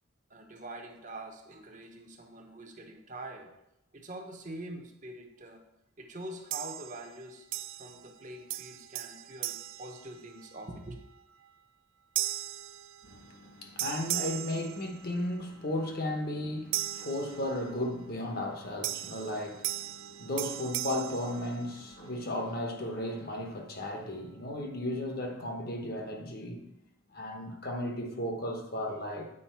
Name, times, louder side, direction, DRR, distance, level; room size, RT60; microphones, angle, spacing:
voice 1, 0.3-3.5 3.9-5.6 6.0-7.5 7.7-11.0, right 1 dB, 35° right, 0.8 m, -44 dB
sound 1, 6.5-7.2 7.5-8.2 8.5-10.7 11.2-11.5 12.2-13.5 13.8-15.4 16.7-17.9 18.8-22.1, right 14 dB, 65° right, 0.3 m, -38 dB
voice 2, 13.0-26.7 27.1-29.3, left 1 dB, 45° left, 1.0 m, -35 dB
8.8 x 4.9 x 4.5 m
head